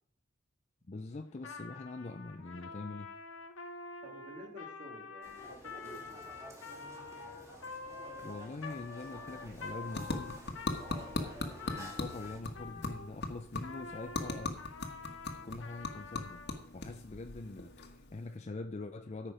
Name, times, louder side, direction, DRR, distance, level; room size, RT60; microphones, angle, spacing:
voice 1, 0.9-3.1 8.2-10.4 11.8-14.6 15.4-16.4 16.7-19.3, left 2 dB, 35° left, 6 dB, 0.5 m, -43 dB
Trumpet, 1.4-13.1 13.6-16.6, left 4 dB, 80° left, 1.0 m, -47 dB
voice 2, 4.0-6.3, equal, 40° right, 2 dB, 2.3 m, -51 dB
sound 1, 5.2-12.4, right 1 dB, 15° right, 2.4 m, -51 dB
sound 2, 9.0-18.4, left 2 dB, 60° left, 1.4 m, -41 dB
13.5 x 5.9 x 5.0 m, 0.63 s
head